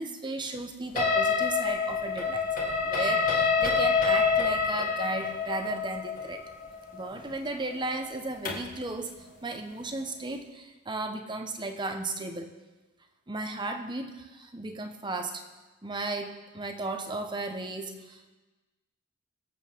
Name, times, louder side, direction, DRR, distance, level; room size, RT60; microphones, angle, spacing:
voice 1, 0.0-2.5 2.8-6.4 6.9-12.5 13.3-15.4 15.8-18.3, right 2 dB, 20° right, 6 dB, 1.0 m, -35 dB
sound 1, 1.0-8.8, left 5 dB, 40° left, 1.8 m, -27 dB
23.5 x 8.4 x 3.6 m, 1.2 s
head